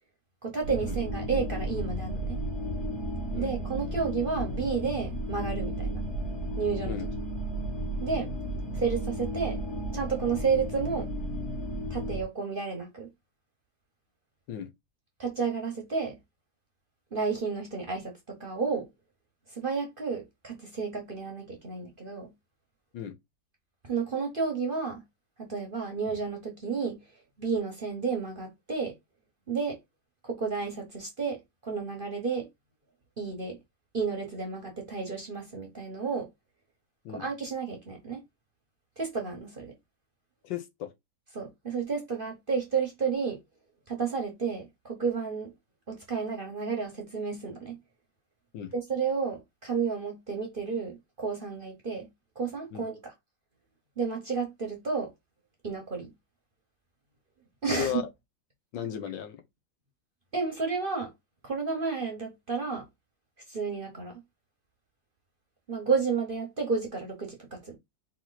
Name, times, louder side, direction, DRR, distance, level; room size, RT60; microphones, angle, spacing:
voice 1, 0.4-2.4 3.3-6.0 6.6-7.0 8.0-8.3 8.7-9.6 9.9-11.1 11.9-13.1 15.2-16.1 17.1-18.9 19.5-22.3 23.8-25.0 25.4-27.0 27.4-28.9 29.5-29.8 30.2-32.5 33.2-33.6 33.9-36.3 37.1-38.2 39.0-39.7 41.3-43.4 43.9-45.5 45.9-47.8 48.7-52.0 52.4-53.1 54.0-55.1 55.6-56.1 57.6-58.0 60.3-61.1 61.4-62.8 63.5-64.1 65.7-67.8, right 5 dB, 35° right, 1.1 m, -31 dB
sound 1, 0.6-12.2, right 1 dB, 40° left, 1.6 m, -33 dB
voice 2, 40.4-40.9 48.5-48.7 52.7-52.8 57.7-58.0 58.7-59.4, left 9 dB, 75° left, 1.5 m, -35 dB
4.4 x 3.0 x 4.0 m
omnidirectional pair, 2.0 m